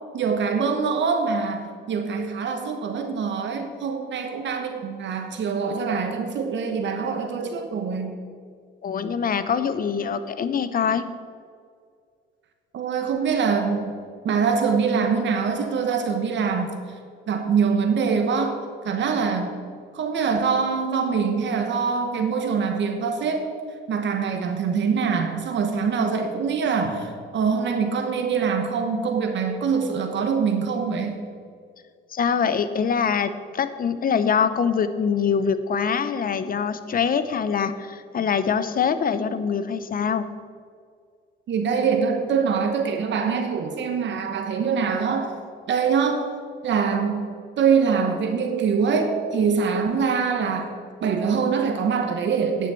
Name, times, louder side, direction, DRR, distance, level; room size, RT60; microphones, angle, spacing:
voice 1, 0.1-8.2 12.7-13.9 14.2-16.7 17.3-18.6 18.8-19.5 19.9-23.5 23.9-31.2 41.5-45.3 45.7-46.3 46.6-47.3 47.6-50.7 51.0-52.7, right 5 dB, 65° right, 5 dB, 1.2 m, -24 dB
voice 2, 8.8-11.1 32.1-40.3, left 6 dB, 45° left, 12 dB, 0.8 m, -24 dB
10.0 x 6.2 x 7.7 m, 2.1 s
cardioid pair, 90°, 20 cm